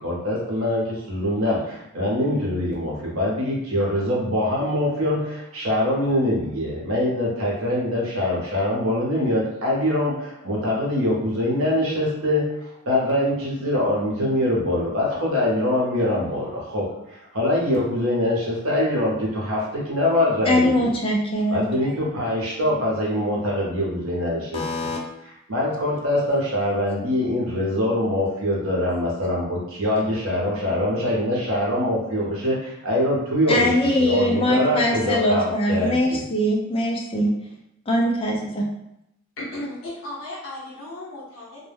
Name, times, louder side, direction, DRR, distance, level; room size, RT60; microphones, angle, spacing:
voice 1, 0.0-12.5 12.9-20.9 21.5-24.9 25.5-36.2, left 1 dB, 65° right, -4 dB, 0.8 m, -23 dB
voice 2, 20.5-21.6 24.5-25.0 33.5-37.3 37.9-38.7, left 1 dB, 25° left, -1 dB, 0.4 m, -22 dB
voice 3, 39.4-41.7, left 1 dB, 65° left, -7 dB, 0.8 m, -35 dB
2.2 x 2.1 x 3.3 m, 0.81 s
head